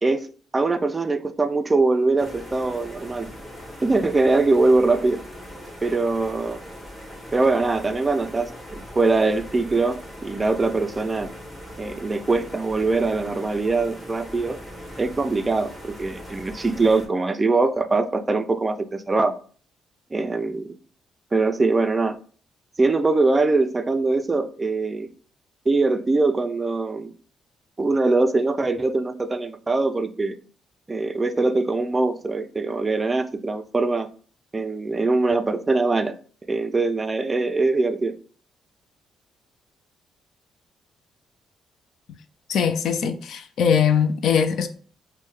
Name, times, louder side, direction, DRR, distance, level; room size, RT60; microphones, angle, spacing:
voice 1, 0.0-3.3 3.8-5.2 5.8-6.6 7.3-11.3 11.8-14.6 15.0-19.3 20.1-20.8 21.3-22.2 22.8-25.1 25.7-27.1 27.8-30.4 30.9-34.1 34.5-36.2 36.5-38.1, right 3 dB, 25° right, 0.3 m, -22 dB
sound 1, 2.2-17.1, equal, 10° left, 1.2 m, -40 dB
voice 2, 42.5-44.7, left 7 dB, 70° left, 0.4 m, -21 dB
4.4 x 2.1 x 3.0 m
cardioid pair, 90°, 0 cm